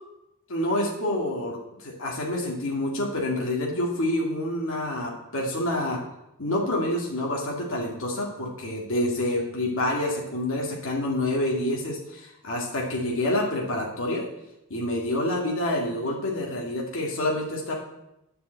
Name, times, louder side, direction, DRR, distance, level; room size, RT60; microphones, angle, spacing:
voice 1, 0.5-6.0 6.4-14.2 14.7-17.7, left 1 dB, 60° left, -2 dB, 2.1 m, -27 dB
9.4 x 5.5 x 7.9 m, 0.87 s
head